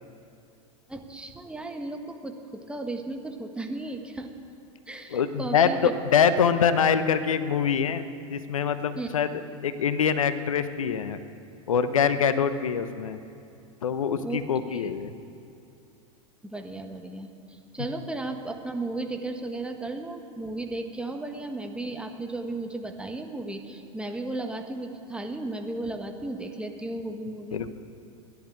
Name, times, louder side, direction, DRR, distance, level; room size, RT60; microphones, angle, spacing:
voice 1, 0.9-4.3 4.9-5.9 9.0-9.1 14.2-14.9 16.4-27.6, right 2 dB, 5° right, 4 dB, 1.5 m, -35 dB
voice 2, 5.1-9.3 9.6-11.2 11.7-13.2 13.8-15.1 27.5-27.7, left 7 dB, 80° left, 12 dB, 0.8 m, -24 dB
14.0 x 11.0 x 8.7 m, 2.6 s
hypercardioid pair, 95°, 17 cm